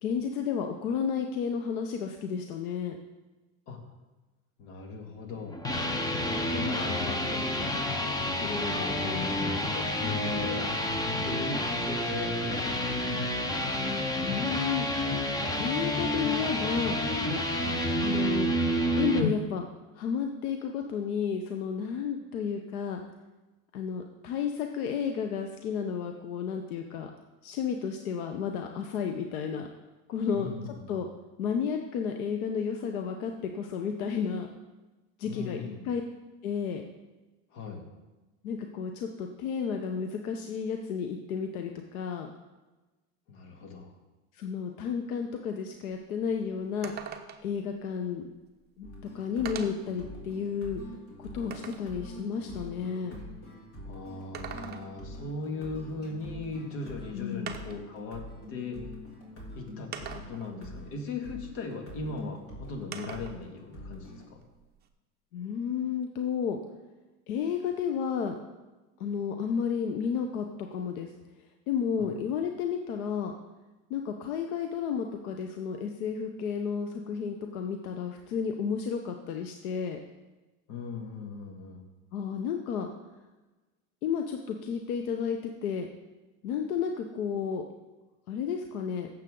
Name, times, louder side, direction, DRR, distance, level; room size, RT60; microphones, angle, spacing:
voice 1, 0.0-3.0 10.0-10.5 14.1-14.9 15.5-17.0 18.0-18.5 19.0-19.7 19.9-23.0 23.7-27.1 27.4-29.7 30.1-31.1 31.4-34.5 35.2-36.0 36.4-36.8 38.4-42.3 44.3-46.9 47.4-48.3 48.8-48.9 49.1-50.8 51.2-53.2 57.1-57.5 65.3-66.6 67.3-68.4 69.0-71.1 71.7-73.4 73.9-80.0 82.1-82.9 84.0-85.9 86.4-87.6 88.3-89.1, left 7 dB, 90° left, 4 dB, 1.0 m, -32 dB
voice 2, 4.6-5.6 6.2-8.0 8.4-10.6 11.1-13.2 17.5-17.8 30.3-31.0 35.2-35.9 37.5-37.9 43.3-43.9 53.9-58.8 59.5-64.4 72.0-72.1 80.7-81.9, left 4 dB, 65° left, 3 dB, 2.3 m, -39 dB
sound 1, 5.4-19.3, left 1 dB, 10° left, 0.6 m, -29 dB
sound 2, 45.9-46.0 46.3-46.4 46.8-47.6 48.6-48.7 49.5-49.9 50.5-51.9 54.1-55.1 56.6-56.7 57.5-57.9 58.9-59.0 59.9-60.5 62.9-63.4 63.8-64.9, right 8 dB, 25° right, 0.8 m, -42 dB
sound 3, 48.8-64.2, left 1 dB, 35° left, 3.0 m, -45 dB
16.0 x 7.5 x 3.8 m, 1.2 s
supercardioid pair, 145°, 42 cm